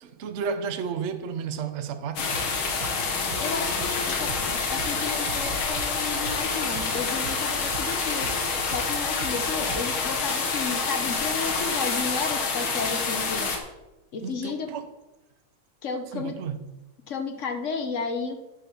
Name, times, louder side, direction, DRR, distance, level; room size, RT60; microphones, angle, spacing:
voice 1, 0.0-2.3 14.2-14.9 16.1-16.6, right 6 dB, 85° right, 0.6 m, -32 dB
sound 1, 2.2-13.6, left 4 dB, 75° left, 2.2 m, -27 dB
sound 2, 2.3-10.1, right 4 dB, 50° right, 1.2 m, -41 dB
voice 2, 3.4-4.3 4.7-8.3 8.6-13.5 14.1-14.7 15.8-16.4 17.1-18.4, left 4 dB, 50° left, 1.0 m, -33 dB
9.5 x 6.8 x 6.0 m
omnidirectional pair, 2.3 m